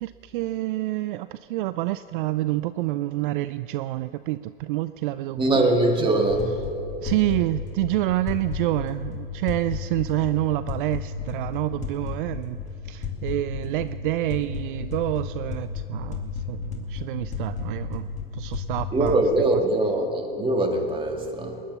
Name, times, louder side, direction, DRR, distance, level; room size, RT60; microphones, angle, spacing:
voice 1, 0.0-5.7 7.0-12.6 12.8-19.2 19.5-19.6, right 16 dB, 60° right, 14 dB, 0.5 m, -28 dB
voice 2, 5.4-6.5 18.9-21.6, right 2 dB, 15° right, 3 dB, 2.2 m, -22 dB
sound 1, 6.3-19.3, left 5 dB, 25° left, 2.3 m, -33 dB
20.5 x 10.0 x 7.0 m, 2.9 s
hypercardioid pair, 105°, 30 cm